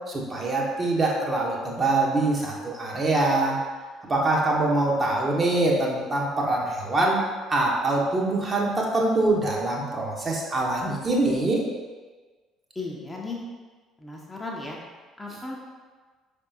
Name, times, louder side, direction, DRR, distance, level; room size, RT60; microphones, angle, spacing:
voice 1, 0.1-3.6 4.1-7.2 7.5-11.7, right 2 dB, 30° right, -2 dB, 0.9 m, -24 dB
voice 2, 12.8-13.4 14.0-14.8 15.2-15.7, left 3 dB, 15° left, -2 dB, 0.7 m, -36 dB
5.3 x 3.5 x 2.7 m, 1.4 s
figure-of-eight pair, 50°, 0 cm